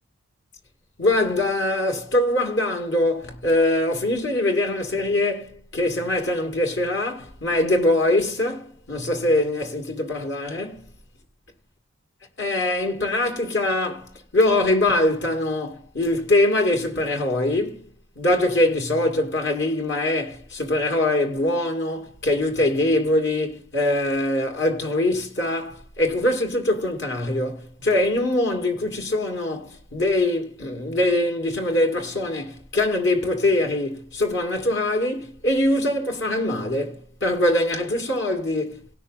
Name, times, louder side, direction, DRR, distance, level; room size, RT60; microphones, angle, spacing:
voice 1, 1.0-10.9 12.4-17.8 18.2-38.9, left 1 dB, 55° left, 2.2 m, -23 dB
18.5 x 6.3 x 4.0 m
head